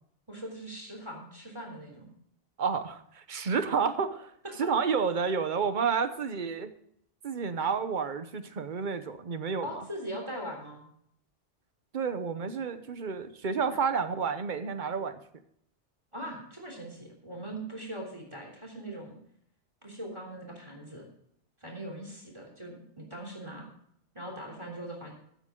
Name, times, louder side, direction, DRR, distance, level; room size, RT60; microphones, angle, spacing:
voice 1, 0.3-2.1 4.6-4.7 9.6-10.8 16.1-19.2 19.8-21.0 21.6-23.7 24.1-25.1, right 1 dB, 25° right, 0 dB, 3.5 m, -41 dB
voice 2, 2.6-4.3 4.6-6.7 7.2-9.8 11.9-15.2, right 5 dB, 45° right, 10 dB, 1.0 m, -30 dB
15.0 x 8.9 x 3.7 m, 0.69 s
omnidirectional pair, 1.2 m